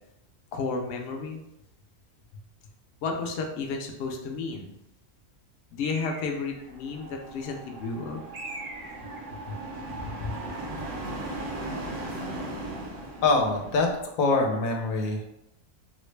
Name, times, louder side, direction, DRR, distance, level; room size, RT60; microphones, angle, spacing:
voice 1, 0.5-1.4 3.0-4.7 5.7-8.2 9.5-9.6 10.0-10.4, left 4 dB, 65° left, 2 dB, 0.7 m, -32 dB
Bird, 5.8-6.7 8.3-9.3, right 2 dB, 60° right, 0.4 m, -41 dB
sound 1, 6.6-14.0, right 1 dB, 85° right, 1.2 m, -38 dB
voice 2, 13.2-13.9 14.2-15.3, left 3 dB, 80° left, 2 dB, 1.0 m, -24 dB
3.8 x 2.1 x 3.2 m, 0.84 s
omnidirectional pair, 1.4 m